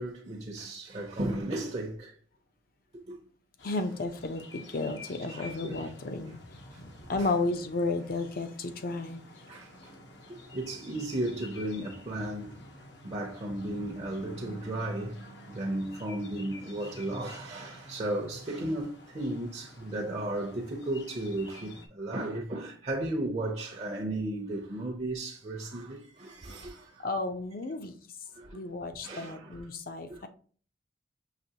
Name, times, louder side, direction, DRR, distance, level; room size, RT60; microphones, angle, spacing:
voice 1, 0.0-2.1 3.1-3.2 5.3-5.9 6.7-6.8 7.2-7.3 8.9-9.0 9.5-9.9 10.5-12.6 13.0-15.2 15.5-27.1 28.3-28.6 29.0-29.6 30.1-30.3, right 1 dB, 35° right, 0.6 m, -35 dB
sound 1, 3.6-21.9, left 1 dB, 75° left, 0.9 m, -49 dB
voice 2, 3.6-6.4 7.1-9.2 27.0-27.9 28.5-30.3, left 3 dB, 55° left, 0.5 m, -33 dB
5.8 x 3.0 x 2.8 m
head